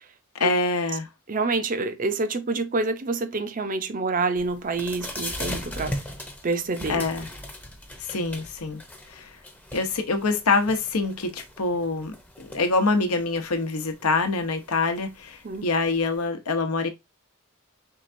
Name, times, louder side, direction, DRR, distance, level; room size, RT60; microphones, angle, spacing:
voice 1, 0.3-1.1 6.9-7.3 8.0-8.8 9.1-9.4 9.7-16.9, left 3 dB, 90° left, 0.9 m, -25 dB
voice 2, 1.3-5.9 6.4-7.0 15.4-15.7, right 3 dB, 40° right, 0.6 m, -27 dB
sound 1, 4.4-16.2, left 1 dB, 10° left, 0.7 m, -39 dB
4.6 x 3.4 x 2.6 m
head